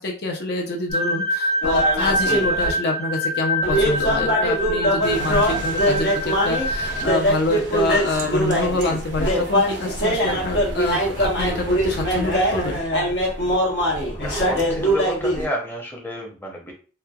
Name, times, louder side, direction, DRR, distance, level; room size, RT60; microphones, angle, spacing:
voice 1, 0.0-12.8, left 2 dB, 65° left, 1 dB, 0.5 m, -26 dB
sound 1, 0.9-7.1, equal, 40° left, 0.9 m, -25 dB
sound 2, 1.6-2.7 3.6-15.5, equal, 80° left, 0.9 m, -22 dB
sound 3, 5.0-12.8, right 3 dB, 80° right, 0.5 m, -36 dB
voice 2, 14.2-16.7, equal, 15° left, -1 dB, 0.6 m, -30 dB
3.0 x 2.2 x 2.3 m, 0.37 s
head